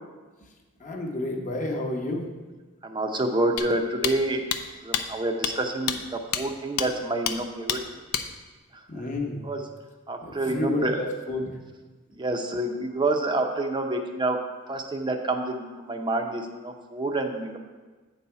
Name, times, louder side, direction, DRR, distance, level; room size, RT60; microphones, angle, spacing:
voice 1, 0.8-2.2 8.9-9.4 10.2-11.5, left 1 dB, 35° left, 1 dB, 0.9 m, -30 dB
voice 2, 2.8-4.4 4.8-7.8 8.9-9.0 9.4-9.7 10.1-11.0 12.1-14.4 14.7-17.6, right 2 dB, 20° right, 4 dB, 0.7 m, -28 dB
sound 1, 3.6-3.7 4.0-4.1 4.5-4.6 4.9-5.0 5.4-5.5 5.9-6.0 6.3-6.4 6.8-6.9 7.3-7.4 7.7-7.8 8.1-8.2, left 9 dB, 85° left, 0.5 m, -26 dB
8.3 x 4.1 x 5.7 m, 1.3 s
head